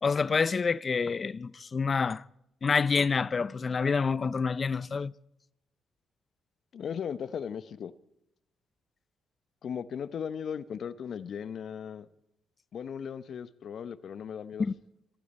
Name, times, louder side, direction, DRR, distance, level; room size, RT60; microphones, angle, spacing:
voice 1, 0.0-2.2 2.6-5.1 14.6-14.7, left 5 dB, 35° left, 0.5 m, -27 dB
voice 2, 6.7-7.9 9.6-12.1 12.7-14.7, left 7 dB, 60° left, 0.8 m, -37 dB
24.5 x 12.0 x 4.3 m
cardioid pair, 90°, 0 cm